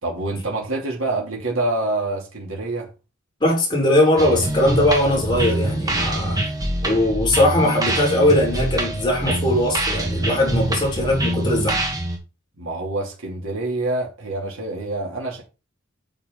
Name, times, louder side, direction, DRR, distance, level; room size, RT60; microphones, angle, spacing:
voice 1, 0.0-2.9 12.6-15.4, right 2 dB, 80° right, 2.9 m, -26 dB
voice 2, 3.4-6.4 6.8-11.8, left 1 dB, 25° left, 4.6 m, -20 dB
sound 1, 4.2-12.2, right 1 dB, 20° right, 2.0 m, -25 dB
8.9 x 6.8 x 3.9 m
head